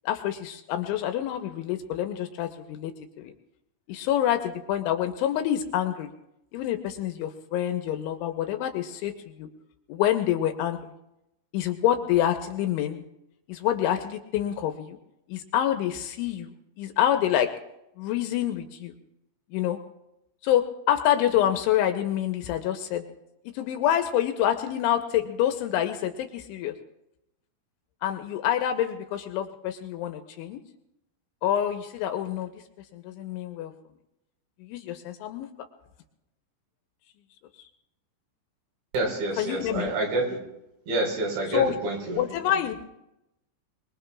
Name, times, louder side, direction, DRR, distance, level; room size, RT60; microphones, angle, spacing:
voice 1, 0.1-2.9 3.2-3.3 3.9-6.1 6.5-9.1 9.4-9.5 9.9-10.8 11.5-13.0 13.5-15.0 15.3-17.5 18.0-18.9 19.5-19.8 20.4-23.0 23.5-26.7 28.0-30.6 31.4-32.5 32.9-33.7 34.6-35.5 39.4-39.9 41.5-41.8 42.1-42.8, left 11 dB, 80° left, 6 dB, 3.0 m, -27 dB
voice 2, 38.9-40.4 40.9-42.4, right 2 dB, 60° right, 0 dB, 6.8 m, -28 dB
23.5 x 22.0 x 2.4 m, 0.87 s
omnidirectional pair, 5.8 m